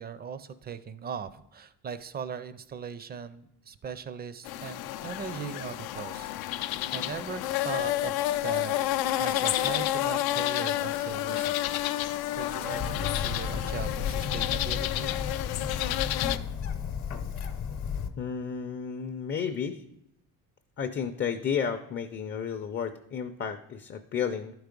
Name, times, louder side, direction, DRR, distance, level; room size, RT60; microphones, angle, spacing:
voice 1, 0.0-8.7 9.2-15.1, right 6 dB, 30° right, 14 dB, 0.4 m, -39 dB
sound 1, 4.4-16.4, left 14 dB, 85° left, 0.5 m, -30 dB
sound 2, 12.3-14.0, right 6 dB, 85° right, 0.9 m, -44 dB
Bird, 12.8-18.1, left 7 dB, 50° left, 0.8 m, -33 dB
voice 2, 18.2-19.8 20.8-24.5, left 7 dB, 35° left, 5 dB, 0.5 m, -32 dB
11.5 x 4.7 x 5.1 m, 0.77 s
cardioid pair, 145°, 36 cm